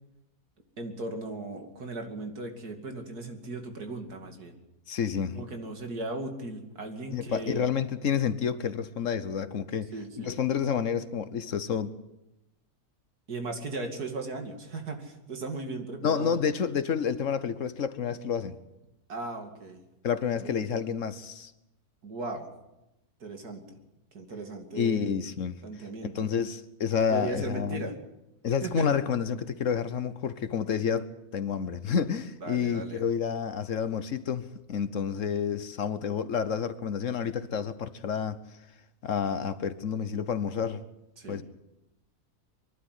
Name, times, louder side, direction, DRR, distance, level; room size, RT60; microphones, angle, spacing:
voice 1, 0.8-4.6 5.3-7.6 9.9-10.4 13.3-16.4 19.1-19.8 20.4-20.7 22.0-22.5 23.2-23.8 24.1-25.1 25.6-26.1 27.1-28.0 28.4-28.9 32.4-33.0 41.2-41.4, right 2 dB, 85° right, 3.0 m, -37 dB
voice 2, 4.9-5.4 7.1-9.9 10.2-11.9 16.0-18.6 20.0-21.5 24.7-25.6 26.1-27.9 28.4-38.4 39.0-40.8 41.3-41.4, left 7 dB, 60° left, 1.2 m, -29 dB
23.5 x 12.0 x 9.6 m
omnidirectional pair, 1.6 m